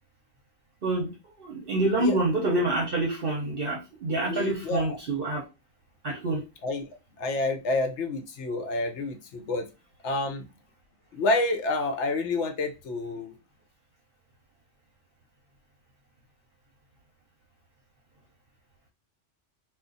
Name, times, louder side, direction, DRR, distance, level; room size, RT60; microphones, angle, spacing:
voice 1, 1.4-5.4 6.0-6.4, right 2 dB, 55° right, -1 dB, 0.8 m, -27 dB
voice 2, 4.3-5.0 6.6-6.9 7.2-9.6 10.0-10.5 11.1-13.3, left 2 dB, 70° left, 4 dB, 0.9 m, -28 dB
2.4 x 2.4 x 3.8 m, 0.27 s
omnidirectional pair, 1.3 m